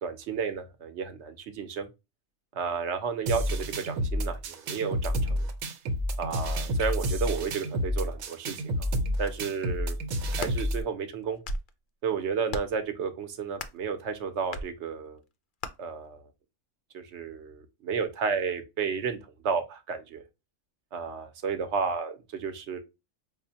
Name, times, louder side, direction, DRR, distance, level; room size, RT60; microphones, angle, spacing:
voice 1, 0.0-1.9 2.5-5.5 6.2-8.9 9.2-10.0 10.3-11.4 12.0-15.2 15.8-16.2 16.9-20.2 20.9-22.1 22.4-22.8, right 6 dB, 60° right, 0.9 m, -32 dB
sound 1, 3.3-10.8, equal, 85° right, 1.2 m, -30 dB
sound 2, 10.3-10.6 11.2-11.7 12.5-12.8 13.6-13.9 14.5-14.7 15.6-15.7, left 2 dB, 65° left, 0.5 m, -35 dB
5.1 x 2.1 x 2.7 m
omnidirectional pair, 1.4 m